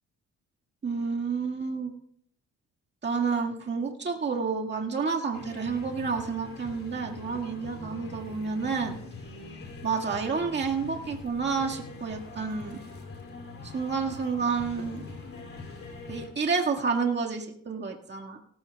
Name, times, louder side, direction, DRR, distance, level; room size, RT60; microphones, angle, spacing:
voice 1, 0.8-1.9 3.0-9.0 9.8-12.8 13.6-15.1 16.1-18.4, right 5 dB, 35° right, 1 dB, 1.9 m, -30 dB
sound 1, 5.3-16.3, left 3 dB, 45° left, 2.9 m, -43 dB
18.0 x 14.0 x 2.3 m, 0.64 s
cardioid pair, 90°, 30 cm